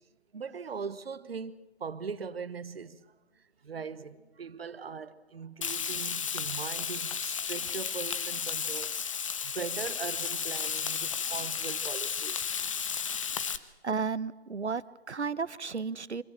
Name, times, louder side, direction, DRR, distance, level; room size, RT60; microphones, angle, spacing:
voice 1, 0.3-3.0 3.6-8.9 9.4-12.5, right 6 dB, 60° right, 1.2 m, -40 dB
Frying (food), 5.6-13.6, left 7 dB, 30° left, 0.8 m, -33 dB
voice 2, 13.8-16.2, right 5 dB, 80° right, 1.0 m, -33 dB
24.5 x 21.5 x 7.4 m
figure-of-eight pair, 145°, 34 cm